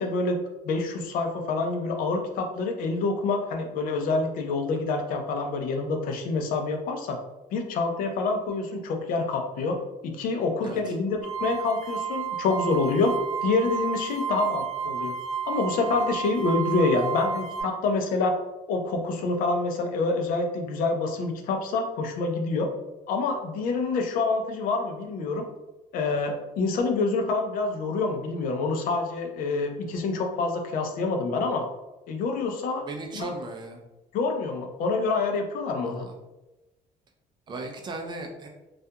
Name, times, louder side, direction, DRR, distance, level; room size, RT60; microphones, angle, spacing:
voice 1, 0.0-7.2 7.5-9.8 10.0-13.1 13.4-15.1 15.5-18.4 18.7-22.7 23.1-25.4 25.9-31.7 32.1-32.8 33.1-33.3 34.1-36.0, left 3 dB, 65° left, 3 dB, 0.5 m, -27 dB
sound 1, 11.2-17.6, right 7 dB, ahead, 0.8 m, -31 dB
voice 2, 32.9-33.8 35.8-36.1 37.5-38.5, right 2 dB, 30° right, 2 dB, 0.4 m, -36 dB
2.3 x 2.2 x 2.7 m, 1.0 s
cardioid pair, 140°, 15 cm